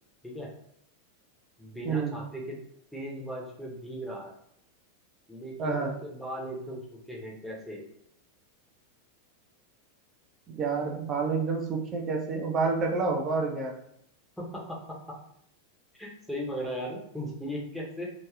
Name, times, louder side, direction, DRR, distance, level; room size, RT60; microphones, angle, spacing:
voice 1, 1.6-2.6 2.9-4.3 5.3-7.8 14.4-15.2 15.9-18.1, equal, ahead, -2 dB, 0.8 m, -37 dB
voice 2, 5.6-6.0 10.5-13.8, right 4 dB, 30° right, 1 dB, 0.6 m, -29 dB
3.0 x 2.9 x 2.3 m, 0.71 s
figure-of-eight pair, 90°, 0 cm